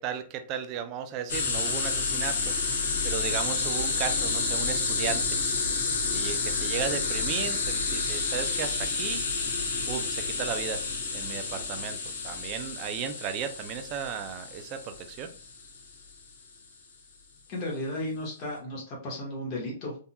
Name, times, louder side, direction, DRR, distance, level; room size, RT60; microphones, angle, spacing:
voice 1, 0.0-2.6 3.0-5.4 6.1-9.2 9.9-10.8 11.1-12.0 12.2-15.3, right 8 dB, 35° right, 0.5 m, -35 dB
sound 1, 1.3-15.8, left 4 dB, 60° left, 1.0 m, -30 dB
voice 2, 17.5-20.0, left 1 dB, 35° left, 1.4 m, -34 dB
3.6 x 2.7 x 2.3 m
hypercardioid pair, 140°, 0 cm